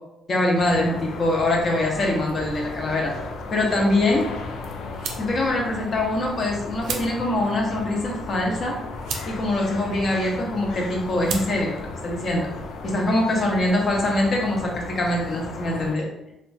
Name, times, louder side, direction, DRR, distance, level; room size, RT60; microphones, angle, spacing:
voice 1, 0.3-3.1 3.5-4.2 5.2-8.8 9.3-11.8 12.0-12.5 12.9-16.1, left 1 dB, 50° left, 0 dB, 0.7 m, -23 dB
sound 1, 0.6-16.0, left 4 dB, 80° left, 0.3 m, -36 dB
sound 2, 2.4-12.8, right 4 dB, 85° right, 0.4 m, -39 dB
2.9 x 2.2 x 2.6 m, 0.89 s
cardioid pair, 90°, 0 cm